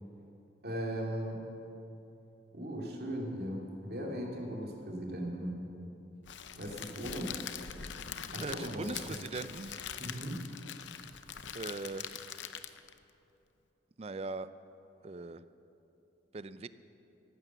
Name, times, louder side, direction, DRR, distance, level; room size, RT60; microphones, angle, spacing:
voice 1, 0.6-1.4 2.5-5.6 6.5-7.3 8.3-8.9 10.0-10.4, equal, 55° right, -1 dB, 2.4 m, -38 dB
Crackle, 6.3-13.0, left 8 dB, 85° left, 0.7 m, -43 dB
voice 2, 8.4-10.0 11.5-12.1 14.0-14.5 15.0-15.4 16.3-16.7, right 3 dB, 35° right, 14 dB, 0.4 m, -40 dB
15.0 x 12.0 x 7.0 m, 2.9 s
head